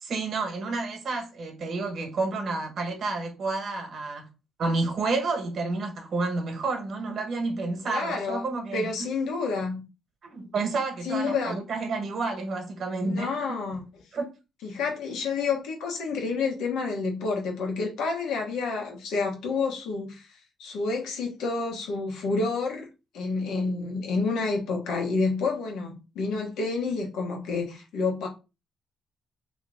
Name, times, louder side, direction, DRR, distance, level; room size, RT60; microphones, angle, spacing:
voice 1, 0.0-4.3 4.6-8.9 10.2-13.5 14.1-14.3, right 3 dB, 55° right, 1.4 m, -30 dB
voice 2, 7.8-8.4 8.7-9.8 11.0-11.5 13.0-13.8 14.6-22.9 23.1-28.3, left 4 dB, 85° left, 1.2 m, -29 dB
3.4 x 3.1 x 3.6 m
cardioid pair, 90°, 0 cm